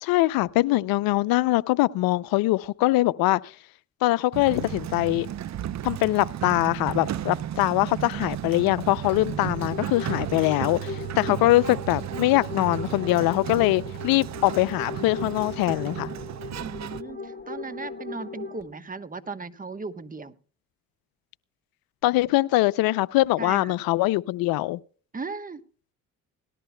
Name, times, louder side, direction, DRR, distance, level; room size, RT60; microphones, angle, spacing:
voice 1, 0.0-3.5 4.0-5.3 5.8-16.1 22.0-24.8, left 18 dB, 80° left, 0.6 m, -23 dB
Sliding door, 4.3-17.0, right 11 dB, 50° right, 0.7 m, -34 dB
sound 1, 9.3-18.6, left 4 dB, 30° left, 3.7 m, -38 dB
voice 2, 16.6-20.3 23.4-23.8 25.1-25.6, right 4 dB, 25° right, 1.2 m, -37 dB
18.5 x 13.5 x 2.2 m
supercardioid pair, 65°, 35 cm